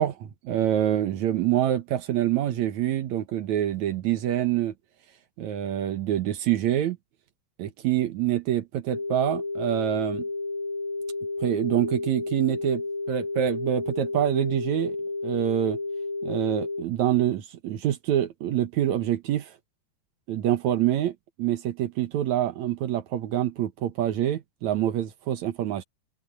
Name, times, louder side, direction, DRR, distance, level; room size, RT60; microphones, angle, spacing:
voice 1, 0.0-4.7 5.4-7.0 7.6-10.3 11.4-15.0 15.2-15.8 16.2-19.5 20.3-25.8, right 11 dB, 75° right, 2.4 m, -26 dB
sound 1, 8.9-16.8, left 3 dB, 10° left, 3.3 m, -31 dB
omnidirectional pair, 3.5 m